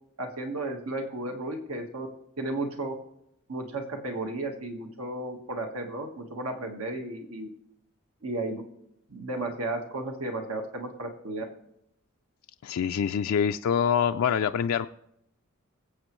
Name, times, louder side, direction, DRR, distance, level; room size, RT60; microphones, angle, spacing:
voice 1, 0.2-2.1 2.4-2.9 3.5-7.5 8.2-8.6 9.1-11.4, right 2 dB, 90° right, 3 dB, 1.4 m, -34 dB
voice 2, 12.6-14.9, left 7 dB, 80° left, 7 dB, 0.3 m, -25 dB
22.0 x 8.1 x 3.1 m, 0.79 s
head